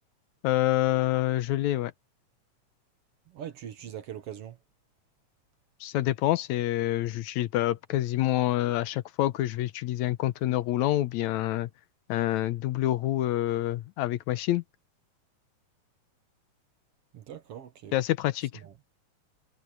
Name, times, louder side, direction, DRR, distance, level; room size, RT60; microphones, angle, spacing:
voice 1, 0.4-1.9 5.8-11.7 12.1-14.6 17.9-18.5, left 14 dB, 80° left, 2.0 m, -27 dB
voice 2, 3.3-4.6 17.1-17.9 18.6-18.7, right 10 dB, 60° right, 1.8 m, -41 dB
omnidirectional pair, 3.4 m